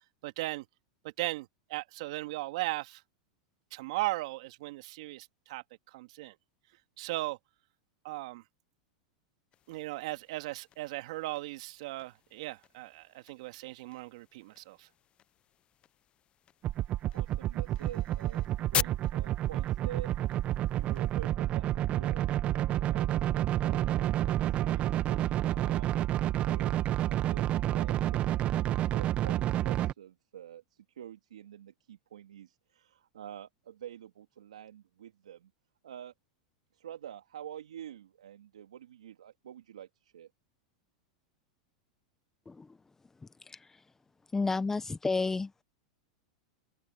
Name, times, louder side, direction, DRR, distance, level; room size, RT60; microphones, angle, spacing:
voice 1, 0.2-0.7 1.0-3.0 3.7-6.4 7.0-7.4 8.0-8.4 9.7-14.9, right 19 dB, 65° right, 2.3 m, -37 dB
sound 1, 9.5-21.3, left 10 dB, 30° left, 0.6 m, -43 dB
sound 2, 16.6-29.9, right 13 dB, 35° right, 1.0 m, -29 dB
voice 2, 17.1-20.1 20.7-22.3 22.7-35.5 35.8-36.1 36.7-40.3, right 10 dB, 90° right, 2.6 m, -48 dB
voice 3, 44.3-45.5, left 3 dB, 10° left, 1.0 m, -31 dB
open air
hypercardioid pair, 115°, 3 cm